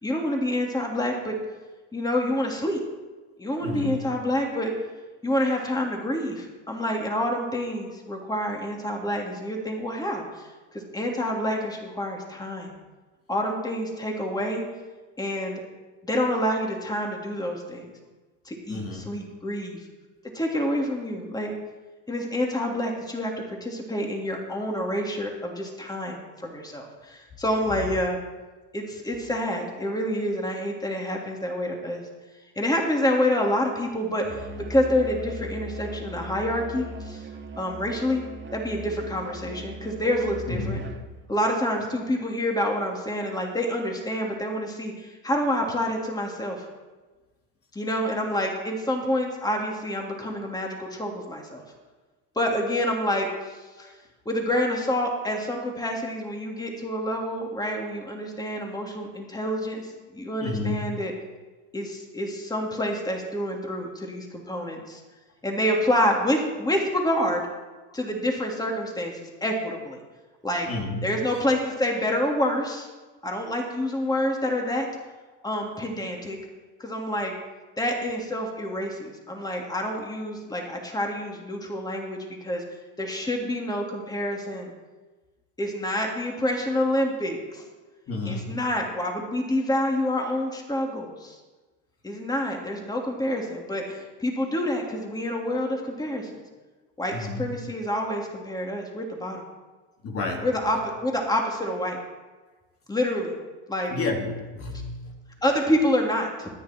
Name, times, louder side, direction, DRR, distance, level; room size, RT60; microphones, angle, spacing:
voice 1, 0.0-1.4 1.9-2.8 3.4-4.7 5.2-12.7 13.3-14.6 15.2-15.6 16.0-17.9 18.4-19.8 20.3-21.5 22.1-28.2 28.7-32.0 32.6-37.2 37.6-38.2 38.5-40.8 41.3-46.7 47.7-51.6 52.3-53.9 54.2-61.1 61.7-65.0 65.4-67.4 67.9-70.0 70.4-70.7 71.0-72.9 73.2-74.9 75.4-76.4 76.8-77.3 77.8-82.6 83.0-84.7 85.6-87.6 88.2-91.4 92.0-96.4 97.0-99.4 100.4-102.0 102.9-103.3 103.7-103.9 105.4-106.5, left 1 dB, 10° left, 0 dB, 3.1 m, -27 dB
voice 2, 3.6-4.0 18.7-19.1 27.7-27.8 40.5-40.7 50.2-50.3 53.8-53.9 60.4-60.8 67.9-68.0 70.7-71.2 88.1-88.6 97.1-97.5 100.0-100.5 103.9-105.2, left 2 dB, 40° left, 0 dB, 3.0 m, -31 dB
Musical instrument, 34.2-41.2, equal, 30° right, 2.3 m, -38 dB
24.5 x 9.9 x 4.6 m, 1.3 s
supercardioid pair, 90°, 34 cm